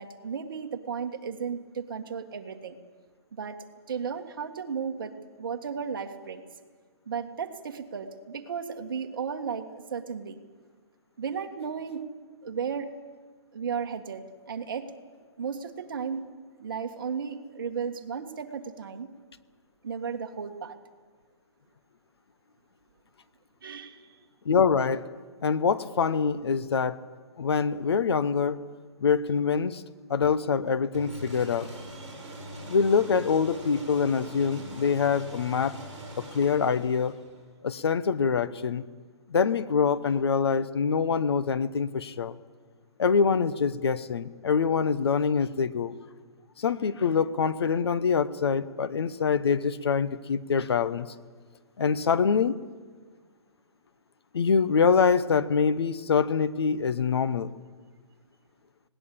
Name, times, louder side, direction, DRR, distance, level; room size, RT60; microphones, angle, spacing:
voice 1, 0.0-2.8 3.3-3.6 3.9-6.4 7.1-10.4 11.2-12.0 12.4-12.9 13.5-14.9 15.4-16.3 16.6-19.1 19.8-20.8 23.6-24.1, right 6 dB, 45° right, 5 dB, 1.7 m, -34 dB
voice 2, 24.4-25.0 25.4-27.0 27.4-28.6 29.0-29.8 30.1-31.7 32.7-35.8 36.3-37.2 37.6-38.8 39.3-42.3 43.0-46.0 46.6-51.1 51.8-52.6 54.3-57.5, left 6 dB, 60° left, 15 dB, 0.9 m, -25 dB
sound 1, 30.9-37.5, right 1 dB, 5° left, 5.2 m, -42 dB
20.0 x 18.5 x 8.5 m, 1.5 s
hypercardioid pair, 175°, 15 cm